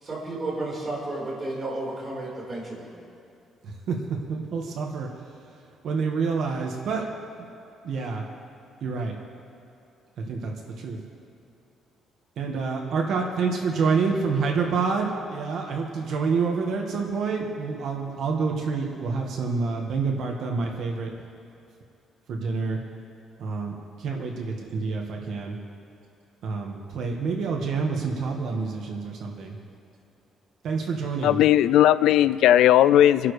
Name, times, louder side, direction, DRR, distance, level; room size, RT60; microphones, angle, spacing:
voice 1, 0.0-2.9, right 2 dB, 25° right, -5 dB, 4.3 m, -32 dB
voice 2, 4.3-5.1 5.8-7.0 7.8-8.2 8.8-9.1 10.3-10.5 10.8-11.0 12.4-21.1 22.3-22.8 23.4-25.5 26.4-29.6 30.6-31.4, right 4 dB, 60° right, 0 dB, 1.6 m, -27 dB
voice 3, 31.2-33.3, left 12 dB, 85° left, 15 dB, 0.3 m, -17 dB
28.0 x 11.5 x 3.3 m, 2.7 s
cardioid pair, 165°, 0 cm